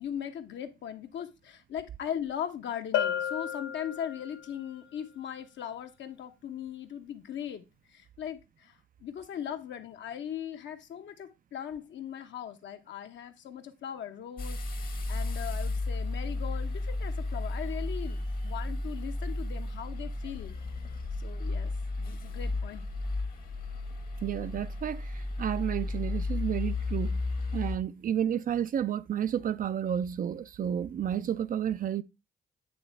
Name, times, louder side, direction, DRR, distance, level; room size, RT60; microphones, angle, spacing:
voice 1, 0.0-20.6 21.2-21.7 22.0-22.9, left 9 dB, 65° left, 1.0 m, -39 dB
Bell, 2.9-4.5, left 10 dB, 85° left, 0.6 m, -32 dB
sound 1, 14.4-27.8, left 2 dB, 45° left, 1.2 m, -33 dB
voice 2, 24.2-27.2 27.5-32.0, right 9 dB, 45° right, 0.4 m, -31 dB
8.8 x 3.3 x 4.4 m
cardioid pair, 90°, 20 cm